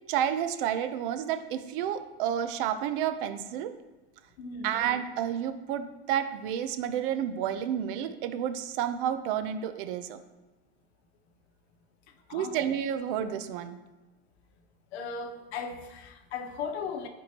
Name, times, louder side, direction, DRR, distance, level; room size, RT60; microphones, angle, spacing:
voice 1, 0.1-3.8 4.6-10.2 12.3-13.8, right 9 dB, 55° right, 10 dB, 0.6 m, -30 dB
voice 2, 4.4-4.7 12.3-12.6 14.9-17.1, left 5 dB, 75° left, 6 dB, 1.1 m, -37 dB
11.5 x 4.5 x 2.9 m, 1.1 s
supercardioid pair, 165°, 32 cm